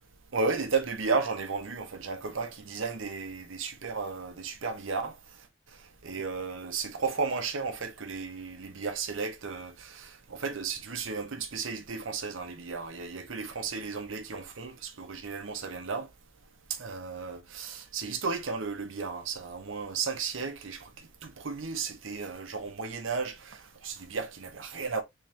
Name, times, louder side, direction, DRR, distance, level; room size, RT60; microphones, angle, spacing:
voice 1, 0.3-5.1 6.0-16.1 16.8-20.9 21.2-25.0, right 4 dB, 80° right, 0.9 m, -34 dB
3.7 x 3.4 x 2.7 m
head